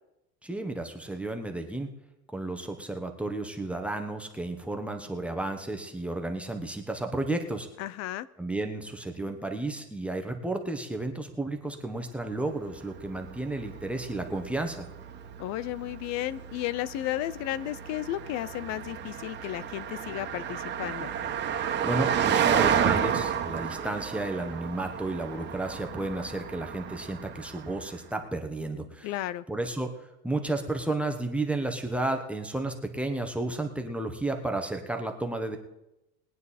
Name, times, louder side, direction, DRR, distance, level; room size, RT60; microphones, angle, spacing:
voice 1, 0.4-1.9 2.3-7.7 8.4-14.9 21.8-29.2 29.5-29.9 30.2-35.6, right 2 dB, 5° right, 4 dB, 1.1 m, -32 dB
voice 2, 7.8-8.3 15.4-21.1 29.0-29.4, left 14 dB, 55° left, 20 dB, 0.6 m, -33 dB
Car passing by, 12.3-28.0, right 8 dB, 30° right, 1.5 m, -32 dB
21.0 x 9.4 x 4.2 m, 0.92 s
cardioid pair, 145°, 33 cm